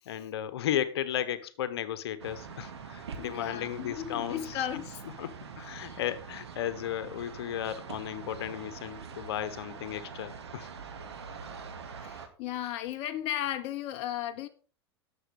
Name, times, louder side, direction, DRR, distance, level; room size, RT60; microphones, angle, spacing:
voice 1, 0.1-4.4 5.2-10.7, left 10 dB, 70° left, 1.1 m, -34 dB
sound 1, 2.2-12.3, right 6 dB, 80° right, 2.1 m, -44 dB
voice 2, 3.2-5.0 5.7-6.0 12.0-14.5, left 12 dB, 45° left, 0.9 m, -35 dB
11.5 x 7.2 x 5.1 m
hypercardioid pair, 95°, 14 cm